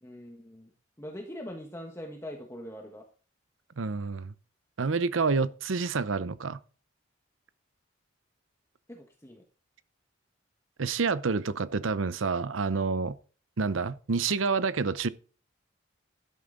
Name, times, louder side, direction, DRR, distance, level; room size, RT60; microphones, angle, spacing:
voice 1, 0.0-0.7 1.0-3.0 8.9-9.4, equal, 15° left, 1.4 m, -42 dB
voice 2, 3.8-4.3 4.8-6.6 10.8-13.2 13.6-15.1, right 4 dB, 80° right, 0.7 m, -28 dB
12.5 x 11.0 x 3.9 m
head